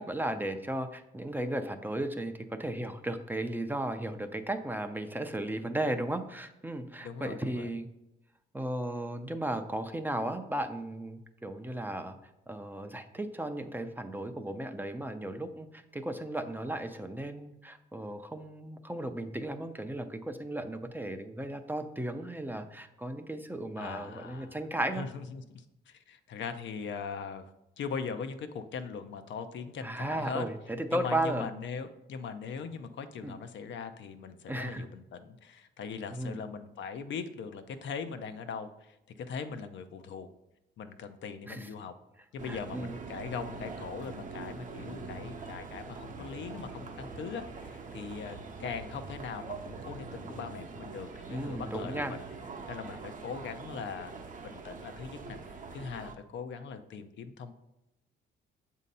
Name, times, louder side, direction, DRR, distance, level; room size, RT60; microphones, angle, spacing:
voice 1, 0.0-7.9 8.5-12.2 12.5-25.0 29.8-31.5 33.2-33.3 34.5-34.8 36.1-36.4 41.5-41.7 42.4-43.0 51.3-52.1, right 1 dB, 10° right, 7 dB, 0.5 m, -35 dB
voice 2, 7.0-7.7 23.8-24.7 25.0-27.5 27.8-30.4 30.9-40.3 40.8-41.9 42.3-52.2 52.7-54.1 54.4-57.5, left 5 dB, 70° left, 8 dB, 0.6 m, -40 dB
sound 1, 42.4-56.1, right 4 dB, 40° right, 0.8 m, -43 dB
7.3 x 2.8 x 5.3 m, 0.91 s
cardioid pair, 90°, 20 cm